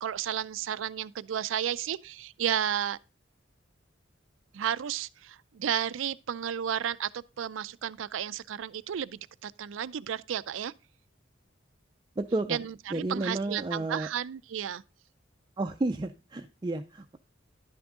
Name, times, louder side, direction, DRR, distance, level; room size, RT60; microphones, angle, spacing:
voice 1, 0.0-3.0 4.5-10.7 12.5-14.8, right 9 dB, 90° right, 0.4 m, -32 dB
voice 2, 12.2-12.6 12.9-14.1 15.6-17.2, right 2 dB, 25° right, 0.4 m, -31 dB
11.0 x 6.1 x 3.7 m
head